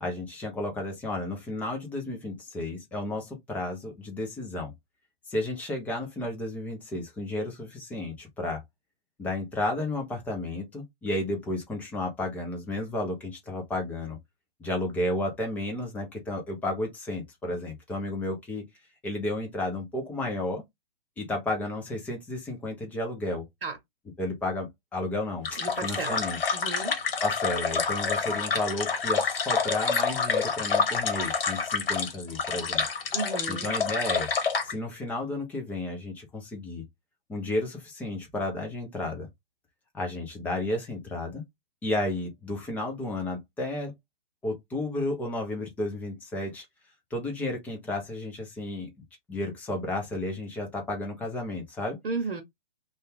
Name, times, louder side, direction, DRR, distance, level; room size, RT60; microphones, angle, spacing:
voice 1, 0.0-4.7 5.3-8.6 9.2-14.2 14.6-18.6 19.0-20.6 21.2-23.5 24.2-26.4 27.2-32.8 33.5-34.3 34.6-36.8 37.3-39.3 39.9-41.4 41.8-43.9 44.4-46.6 47.1-48.9 49.3-52.0, left 2 dB, 5° left, 0.5 m, -32 dB
sound 1, 25.4-34.7, left 5 dB, 65° left, 1.1 m, -28 dB
voice 2, 25.6-26.2 26.5-26.9 33.1-33.7 52.0-52.4, right 4 dB, 70° right, 0.9 m, -33 dB
2.6 x 2.3 x 3.3 m
hypercardioid pair, 135°, 30 cm